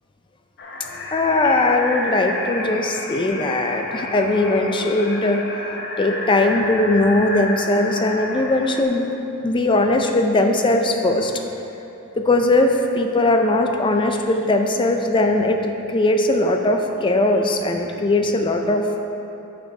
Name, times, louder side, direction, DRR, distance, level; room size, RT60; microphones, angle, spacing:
sound 1, 0.6-8.8, left 1 dB, 55° left, 0.8 m, -31 dB
voice 1, 1.1-5.4 6.0-9.1 9.4-11.3 12.2-19.0, left 2 dB, 25° left, 4 dB, 0.4 m, -19 dB
6.7 x 6.6 x 4.7 m, 2.9 s
head